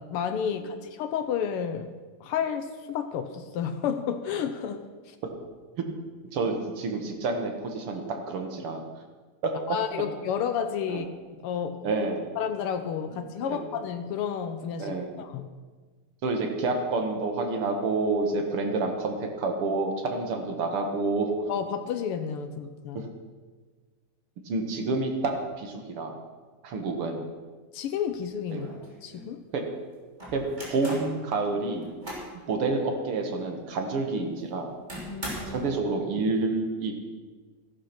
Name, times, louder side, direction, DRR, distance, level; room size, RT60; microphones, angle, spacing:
voice 1, 0.0-1.9 2.2-5.2 9.7-11.9 12.3-15.5 21.5-23.1 27.7-28.7 29.0-29.4 35.1-35.6, left 7 dB, 80° left, 8 dB, 1.2 m, -31 dB
voice 2, 6.3-8.8 9.4-9.5 10.9-11.0 11.8-12.3 13.4-13.6 14.8-15.1 16.2-21.3 22.9-23.1 24.5-26.1 26.6-27.2 28.5-28.6 29.5-29.6 30.3-30.4 30.7-31.9 32.5-34.7 35.5-37.0, right 3 dB, 55° right, 4 dB, 2.1 m, -28 dB
sound 1, 28.1-28.2 28.5-29.3 30.2-31.1 31.6-32.4 32.8-32.9 33.4-33.5 34.9-35.7, equal, 15° right, 3.0 m, -39 dB
14.0 x 11.5 x 6.0 m, 1.4 s
omnidirectional pair, 3.5 m